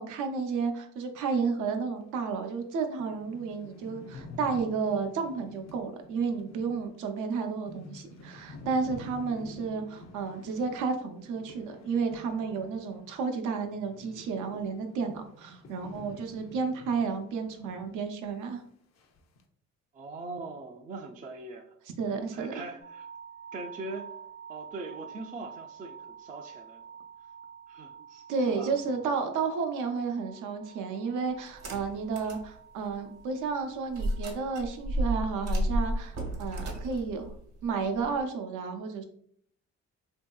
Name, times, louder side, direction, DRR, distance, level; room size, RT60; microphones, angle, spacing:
voice 1, 0.0-18.6 22.0-22.6 28.3-37.3 37.6-39.0, right 5 dB, 85° right, 5 dB, 0.6 m, -32 dB
sound 1, 2.3-2.4 2.7-2.8 3.0-13.2 13.5-18.0 18.2-18.3 19.0-19.4, left 2 dB, 60° left, 0.5 m, -49 dB
voice 2, 19.9-21.7 22.3-23.1 23.5-24.1 24.5-26.8 27.7-28.7, right 3 dB, 30° right, 2 dB, 0.3 m, -41 dB
sound 2, 22.8-36.8, right 7 dB, 85° left, 1.0 m, -49 dB
sound 3, 31.5-32.5 32.9-33.0 33.9-38.2, equal, 55° right, 0.9 m, -32 dB
3.0 x 2.7 x 2.2 m, 0.63 s
cardioid pair, 90°, 30 cm